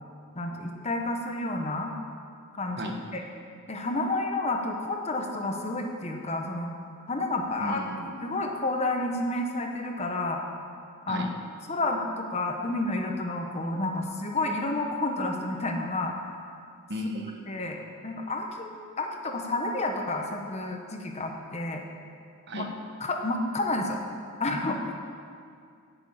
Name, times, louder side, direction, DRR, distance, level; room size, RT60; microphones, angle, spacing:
voice 1, 0.3-1.9 2.5-3.2 3.7-6.7 7.1-7.8 8.2-10.4 11.1-11.3 11.7-16.3 17.5-21.8 22.5-22.7 23.0-24.0 24.4-24.9, left 2 dB, 30° left, 3 dB, 1.0 m, -30 dB
voice 2, 7.6-8.1 11.1-11.3 16.9-17.5 22.5-22.7, equal, 55° right, 3 dB, 1.2 m, -34 dB
9.4 x 7.1 x 8.7 m, 2.3 s
head